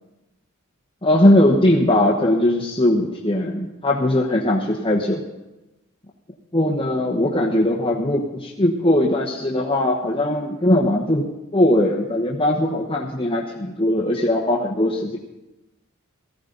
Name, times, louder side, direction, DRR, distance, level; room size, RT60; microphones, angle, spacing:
voice 1, 1.0-5.2 6.5-11.3 11.5-15.2, left 1 dB, 25° left, -3 dB, 1.1 m, -19 dB
18.0 x 14.5 x 4.0 m, 1.0 s
head